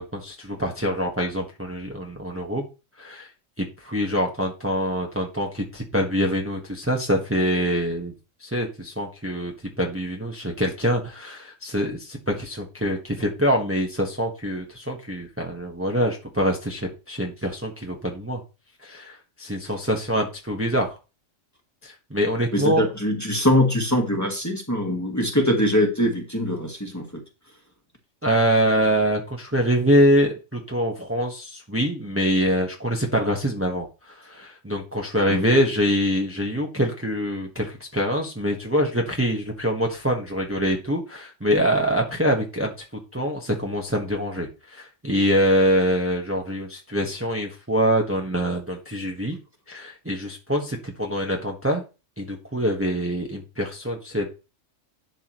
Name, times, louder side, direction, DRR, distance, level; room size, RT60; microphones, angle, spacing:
voice 1, 0.0-2.6 3.0-3.3 3.6-8.1 8.4-9.5 9.8-18.4 18.8-21.0 21.8-22.8 28.2-42.7 43.1-49.4 49.7-51.8 52.2-54.3, equal, 10° right, 1 dB, 1.3 m, -24 dB
voice 2, 22.5-27.2 35.3-35.4, left 1 dB, 15° left, 1 dB, 1.7 m, -22 dB
11.0 x 6.0 x 3.1 m, 0.30 s
omnidirectional pair, 1.3 m